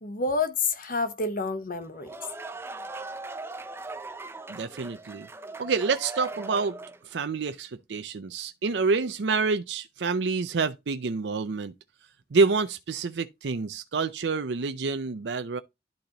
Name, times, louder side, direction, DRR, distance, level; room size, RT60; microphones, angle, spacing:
voice 1, 0.0-2.1, left 3 dB, 55° left, 1.0 m, -28 dB
sound 1, 1.8-7.1, right 2 dB, 15° right, 0.5 m, -39 dB
voice 2, 4.5-5.3 5.6-6.8 7.0-11.7 12.3-15.6, right 4 dB, 75° right, 0.5 m, -27 dB
12.0 x 3.9 x 2.9 m
head